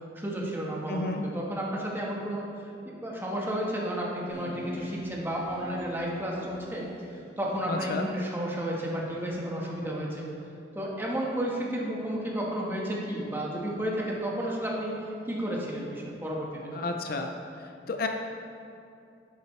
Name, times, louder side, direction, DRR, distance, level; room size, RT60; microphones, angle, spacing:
voice 1, 0.1-2.4 2.8-6.8 7.1-10.2 10.7-14.9 15.3-16.7, right 1 dB, 15° right, -3 dB, 1.4 m, -32 dB
voice 2, 0.9-1.2 7.7-8.1 16.7-17.3 17.9-18.1, left 3 dB, 55° left, 4 dB, 0.5 m, -31 dB
sound 1, 4.3-8.0, equal, 35° left, 1.9 m, -44 dB
10.5 x 8.4 x 3.3 m, 2.5 s
head